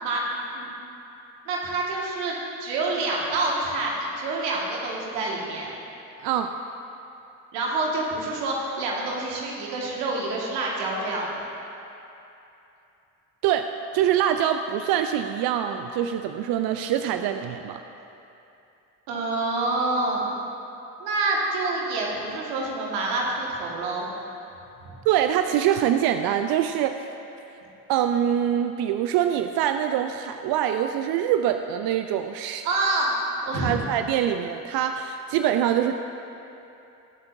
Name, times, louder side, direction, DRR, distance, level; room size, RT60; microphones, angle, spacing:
voice 1, 1.5-2.3 2.6-5.7 7.5-11.4 19.1-20.2 21.0-24.1 32.6-33.2 33.4-33.7, right 2 dB, 70° right, -3 dB, 1.9 m, -27 dB
voice 2, 6.2-6.5 13.4-17.8 25.1-27.0 27.9-32.7 33.6-35.9, right 10 dB, 50° right, 8 dB, 0.5 m, -24 dB
19.0 x 7.9 x 2.7 m, 2.9 s
figure-of-eight pair, 55°, 49 cm